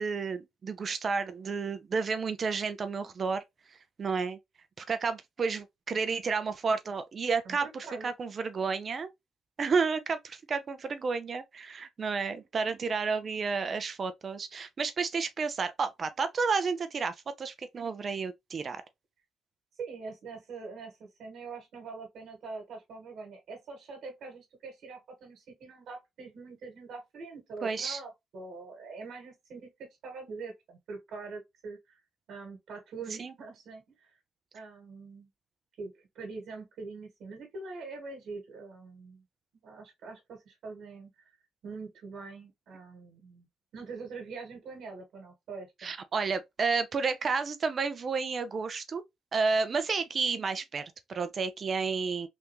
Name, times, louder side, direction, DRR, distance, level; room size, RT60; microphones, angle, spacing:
voice 1, 0.0-3.4 3.7-4.4 4.8-9.1 9.6-18.8 27.6-28.0 33.2-33.3 45.8-49.0 49.3-52.3, right 5 dB, 45° right, 0.5 m, -31 dB
voice 2, 7.4-8.1 19.8-32.0 32.3-34.2 34.5-35.3 35.8-39.2 39.6-41.3 41.6-43.5 43.7-45.9, right 4 dB, 75° right, 1.4 m, -44 dB
3.4 x 2.6 x 3.0 m
cardioid pair, 90°, 0 cm